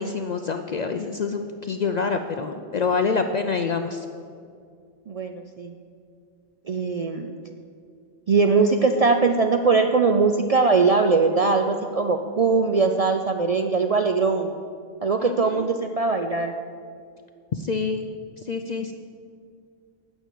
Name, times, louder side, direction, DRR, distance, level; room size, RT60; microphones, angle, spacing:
voice 1, 0.0-4.1 15.2-15.6 17.5-18.1 18.4-18.9, left 5 dB, 55° left, 7 dB, 0.5 m, -26 dB
voice 2, 5.1-5.7 6.7-7.3 8.3-14.5 15.0-16.5, right 4 dB, 50° right, 5 dB, 0.4 m, -21 dB
9.3 x 6.4 x 8.2 m, 2.3 s
omnidirectional pair, 1.2 m